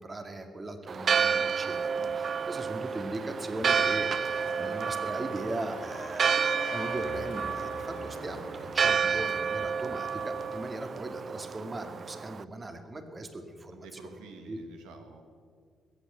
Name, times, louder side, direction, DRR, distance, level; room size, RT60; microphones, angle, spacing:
voice 1, 0.0-6.5 6.7-14.6, right 1 dB, 30° right, 6 dB, 2.2 m, -39 dB
Church bell, 0.9-12.4, right 6 dB, 50° right, 0.4 m, -30 dB
sound 1, 1.4-10.6, left 4 dB, 85° left, 3.1 m, -46 dB
voice 2, 13.7-15.2, right 3 dB, 90° right, 4 dB, 1.7 m, -49 dB
21.0 x 8.3 x 7.9 m, 2.2 s
supercardioid pair, 65°, 0 cm